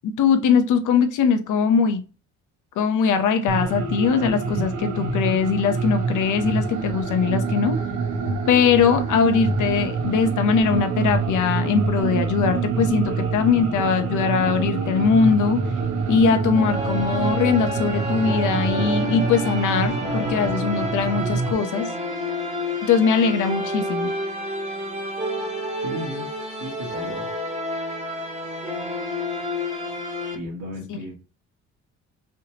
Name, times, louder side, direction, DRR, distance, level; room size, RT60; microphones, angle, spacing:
voice 1, 0.0-2.0 2.8-7.8 8.5-15.6 16.1-21.9 22.9-24.1 30.9-31.0, left 6 dB, 80° left, 8 dB, 0.9 m, -21 dB
sound 1, 3.5-21.5, right 4 dB, 80° right, 1.3 m, -26 dB
sound 2, 16.5-30.3, left 1 dB, 20° right, 1.6 m, -29 dB
voice 2, 25.8-26.3 26.6-27.3 30.3-31.2, equal, 65° right, -7 dB, 1.9 m, -34 dB
5.5 x 3.2 x 2.9 m, 0.34 s
cardioid pair, 90°, 30 cm